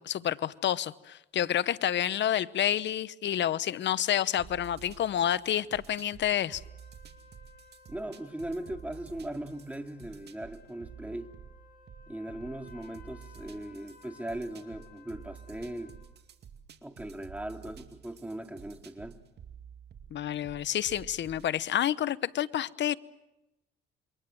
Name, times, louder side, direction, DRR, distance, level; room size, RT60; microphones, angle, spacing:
voice 1, 0.0-6.6 20.1-22.9, left 11 dB, 65° left, 0.9 m, -29 dB
sound 1, 4.4-21.5, right 7 dB, 55° right, 2.4 m, -51 dB
sound 2, 6.3-16.2, left 6 dB, 50° left, 7.0 m, -58 dB
voice 2, 7.9-11.3 12.1-15.9 16.8-19.2, right 1 dB, 5° right, 2.5 m, -39 dB
28.0 x 24.5 x 7.7 m
cardioid pair, 90°, 20 cm